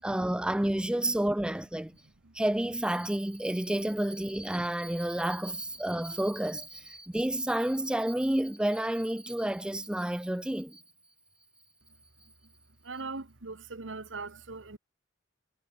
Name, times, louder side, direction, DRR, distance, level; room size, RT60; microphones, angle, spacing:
voice 1, 0.0-1.9 2.3-10.8, right 1 dB, 5° right, 0.3 m, -30 dB
voice 2, 12.8-14.8, right 3 dB, 90° right, 1.5 m, -40 dB
head